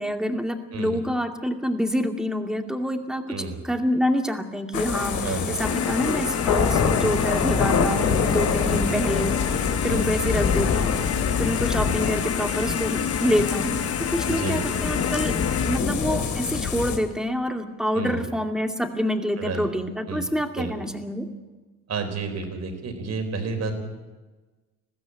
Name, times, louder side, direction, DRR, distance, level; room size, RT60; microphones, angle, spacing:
voice 1, 0.0-3.4 3.6-10.9 11.4-15.3 15.7-21.3, equal, ahead, 5 dB, 2.3 m, -27 dB
voice 2, 0.7-1.0 3.3-3.6 5.2-5.6 8.0-8.3 8.6-8.9 9.9-10.1 11.8-11.9 14.3-14.7 17.9-18.2 19.4-19.7 20.1-20.2 20.6-20.7 21.9-23.9, right 3 dB, 60° right, 6 dB, 4.3 m, -31 dB
sound 1, 4.7-17.0, left 6 dB, 75° left, 2.8 m, -25 dB
sound 2, 5.6-15.8, left 8 dB, 50° left, 1.0 m, -30 dB
21.0 x 15.0 x 8.6 m, 1.2 s
cardioid pair, 90°, 30 cm